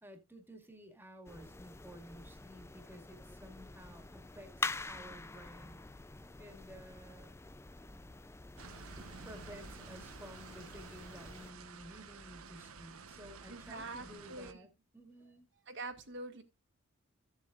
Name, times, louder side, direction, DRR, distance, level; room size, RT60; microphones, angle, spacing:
voice 1, 0.0-5.8 6.4-7.4 9.0-15.5, equal, 10° right, 2.1 m, -53 dB
sound 1, 1.3-11.5, left 3 dB, 10° left, 0.4 m, -46 dB
sound 2, 8.6-14.5, right 4 dB, 80° right, 1.1 m, -51 dB
voice 2, 13.5-14.6 15.7-16.4, right 2 dB, 55° right, 1.8 m, -45 dB
15.0 x 7.3 x 2.4 m
head